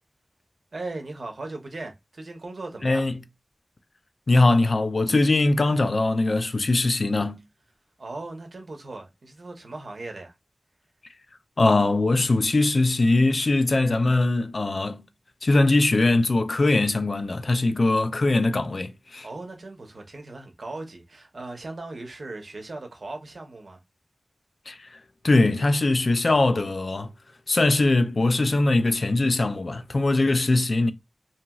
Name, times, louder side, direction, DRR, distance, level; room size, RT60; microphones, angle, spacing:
voice 1, 0.7-3.0 8.0-10.3 19.2-23.8, right 2 dB, 75° right, 0.7 m, -38 dB
voice 2, 2.8-3.2 4.3-7.4 11.6-15.1 15.4-19.3 24.7-25.0 25.2-27.1 27.5-30.9, left 2 dB, 65° left, 0.3 m, -21 dB
2.9 x 2.7 x 2.2 m
wide cardioid pair, 80°, 0 cm